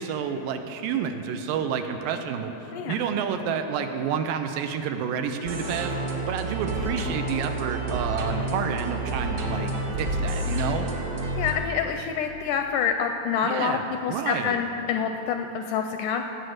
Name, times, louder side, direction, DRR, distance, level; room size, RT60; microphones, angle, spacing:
voice 1, 0.0-5.9 6.3-10.9 13.4-14.6, right 7 dB, 80° right, 6 dB, 2.3 m, -29 dB
sound 1, 5.4-11.5, right 1 dB, 55° right, 2.0 m, -29 dB
voice 2, 11.4-16.2, left 7 dB, 80° left, 6 dB, 1.9 m, -27 dB
17.5 x 8.2 x 6.4 m, 3.0 s
omnidirectional pair, 4.1 m